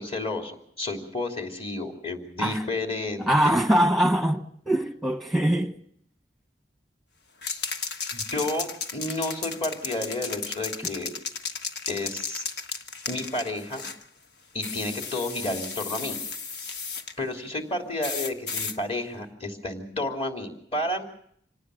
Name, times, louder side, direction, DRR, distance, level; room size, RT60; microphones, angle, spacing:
voice 1, 0.0-3.5 8.1-11.1 11.9-12.4 13.1-13.9 14.5-16.2 17.2-21.0, left 2 dB, 35° left, 3.2 m, -31 dB
voice 2, 3.2-5.8, right 1 dB, ahead, 1.2 m, -23 dB
sound 1, 7.4-14.0 14.6-17.1 18.0-18.8, left 5 dB, 65° left, 1.3 m, -34 dB
26.0 x 18.5 x 6.4 m
head